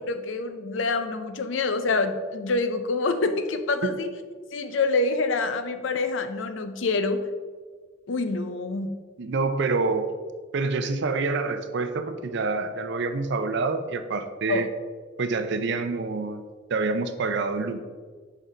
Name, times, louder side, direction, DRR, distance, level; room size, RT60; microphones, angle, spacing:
voice 1, 0.1-4.1 4.5-7.3 8.1-9.0 14.5-14.7, left 3 dB, 70° left, 9 dB, 0.6 m, -26 dB
voice 2, 9.2-10.1 10.5-14.7 15.2-16.4 16.7-17.8, right 3 dB, 60° right, 9 dB, 0.5 m, -27 dB
6.4 x 5.3 x 3.9 m, 1.5 s
head